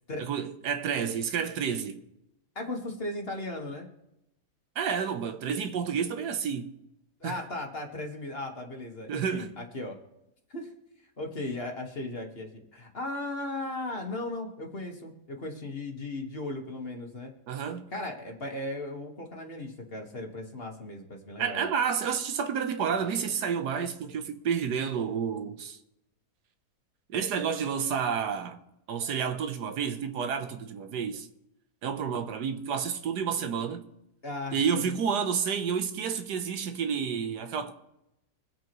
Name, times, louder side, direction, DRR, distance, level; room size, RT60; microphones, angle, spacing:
voice 1, 0.2-2.0 4.7-6.7 7.2-7.4 9.1-9.5 17.5-17.9 21.4-25.8 27.1-28.6 28.9-31.3 31.8-33.8 34.5-37.7, right 7 dB, 75° right, 1.4 m, -30 dB
voice 2, 2.6-3.9 7.2-10.0 10.5-10.7 11.2-17.3 17.9-21.7 34.2-35.0, left 2 dB, 35° left, 1.7 m, -37 dB
24.5 x 8.2 x 3.1 m
omnidirectional pair, 1.8 m